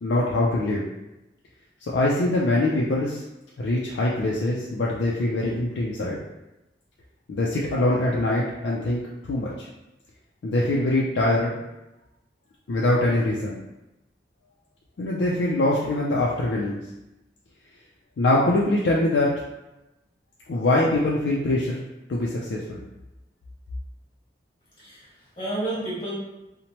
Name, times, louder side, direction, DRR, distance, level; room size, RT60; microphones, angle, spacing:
voice 1, 0.0-0.9 1.8-3.2 3.6-6.2 7.3-9.7 10.4-11.6 12.7-13.5 15.0-16.8 18.2-19.3 20.5-21.8 22.1-22.8, left 2 dB, 80° left, -4 dB, 0.4 m, -23 dB
voice 2, 24.8-26.2, right 1 dB, 30° left, -8 dB, 1.1 m, -31 dB
2.9 x 2.1 x 2.8 m, 0.96 s
head